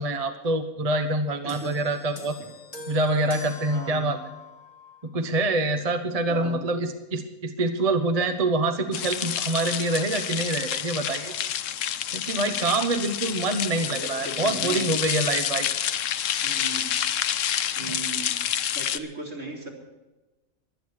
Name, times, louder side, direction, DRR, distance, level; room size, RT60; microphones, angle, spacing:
voice 1, 0.0-2.4 2.9-4.2 5.0-11.3 12.1-15.7, right 2 dB, 30° right, 7 dB, 0.9 m, -26 dB
voice 2, 1.4-1.8 3.7-4.1 6.3-6.7 13.8-14.9 16.4-16.8 17.8-19.7, right 3 dB, 65° right, -2 dB, 4.0 m, -37 dB
sound 1, 1.5-5.1 6.0-6.1, left 3 dB, 35° left, 1.9 m, -43 dB
sound 2, 8.9-19.0, left 10 dB, 75° left, 1.0 m, -28 dB
23.5 x 9.3 x 4.7 m, 1.1 s
omnidirectional pair, 1.4 m